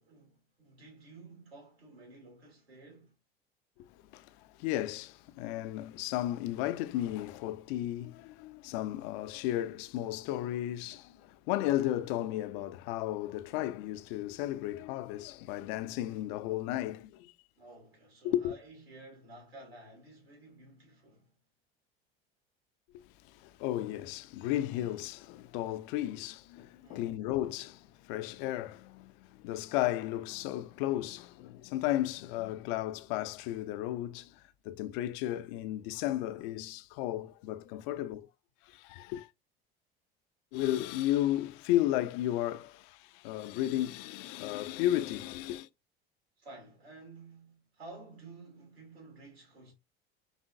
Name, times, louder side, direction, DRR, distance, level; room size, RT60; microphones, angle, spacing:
voice 1, 0.0-3.2 17.6-21.3 26.8-27.2 37.8-38.2 46.4-49.7, right 2 dB, 90° right, 2.4 m, -52 dB
voice 2, 3.8-17.3 18.2-18.5 22.9-38.3 38.6-39.3 40.5-45.7, left 14 dB, 60° left, 0.5 m, -34 dB
4.0 x 3.7 x 2.5 m
hypercardioid pair, 70°, 30 cm